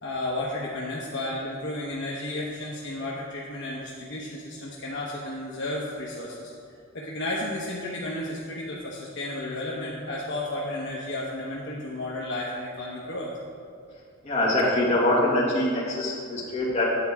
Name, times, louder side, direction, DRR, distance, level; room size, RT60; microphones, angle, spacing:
voice 1, 0.0-6.5 6.9-13.3, left 1 dB, 55° left, -5 dB, 1.0 m, -33 dB
voice 2, 14.2-16.9, left 1 dB, 30° left, -6 dB, 2.3 m, -24 dB
9.0 x 4.7 x 7.4 m, 2.4 s
head